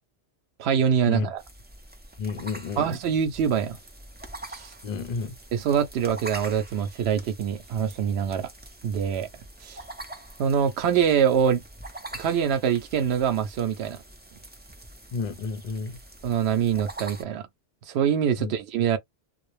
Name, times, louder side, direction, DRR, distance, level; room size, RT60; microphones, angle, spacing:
voice 1, 0.6-1.4 2.8-3.8 4.5-4.7 5.5-8.5 8.8-9.3 9.6-9.8 10.4-11.6 12.1-14.0 16.2-17.4 17.9-19.0, right 8 dB, 85° right, 0.8 m, -24 dB
sound 1, 1.4-17.2, right 2 dB, 15° right, 0.4 m, -44 dB
voice 2, 2.2-2.9 4.8-5.3 15.1-16.0 18.4-18.5, left 4 dB, 50° left, 0.6 m, -31 dB
2.2 x 2.0 x 3.0 m
omnidirectional pair, 1.0 m